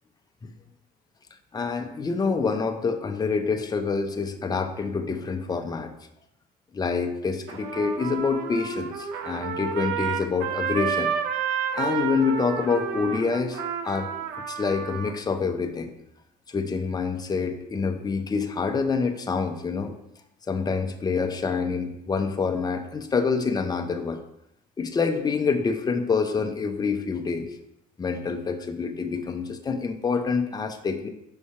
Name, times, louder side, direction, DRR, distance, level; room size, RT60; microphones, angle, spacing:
voice 1, 1.5-5.9 6.7-11.1 11.7-14.1 14.5-15.9 16.5-19.9 20.5-24.2 24.8-27.5 28.0-31.1, left 5 dB, 25° left, 5 dB, 0.7 m, -26 dB
Trumpet, 7.5-15.1, right 7 dB, 90° right, 0.6 m, -30 dB
5.4 x 3.4 x 5.7 m, 0.80 s
cardioid pair, 110°, 17 cm